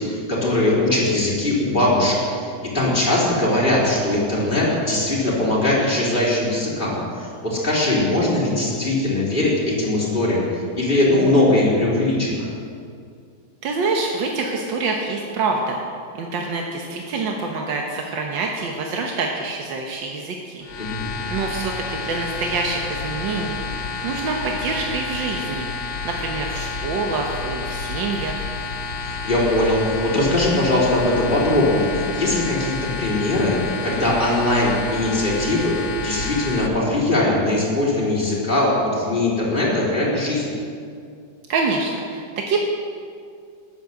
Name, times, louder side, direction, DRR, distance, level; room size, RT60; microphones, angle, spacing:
voice 1, 0.0-12.5 20.8-21.1 29.0-40.5, left 1 dB, 25° left, -6 dB, 4.1 m, -20 dB
voice 2, 13.6-15.8 16.1-20.7 21.3-25.7 26.0-28.5 41.5-42.7, right 3 dB, 90° right, 0 dB, 1.9 m, -26 dB
sound 1, 20.6-36.7, left 4 dB, 85° left, 1.9 m, -30 dB
13.0 x 11.0 x 7.7 m, 2.3 s
omnidirectional pair, 2.0 m